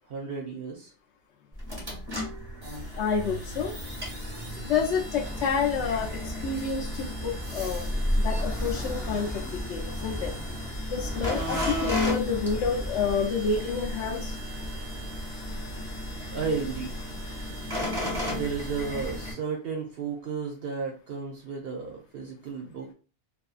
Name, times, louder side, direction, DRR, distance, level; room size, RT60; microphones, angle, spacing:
voice 1, 0.1-0.9 16.3-16.9 18.3-22.9, right 5 dB, 60° right, -1 dB, 0.8 m, -33 dB
sound 1, 1.5-19.3, left 1 dB, 20° right, 1.0 m, -33 dB
voice 2, 3.0-3.7 4.5-7.9 8.2-10.3 10.9-14.4, left 6 dB, 75° left, 1 dB, 0.9 m, -29 dB
sound 2, 5.2-13.1, left 1 dB, ahead, 0.5 m, -38 dB
2.6 x 2.5 x 2.4 m, 0.35 s
omnidirectional pair, 1.2 m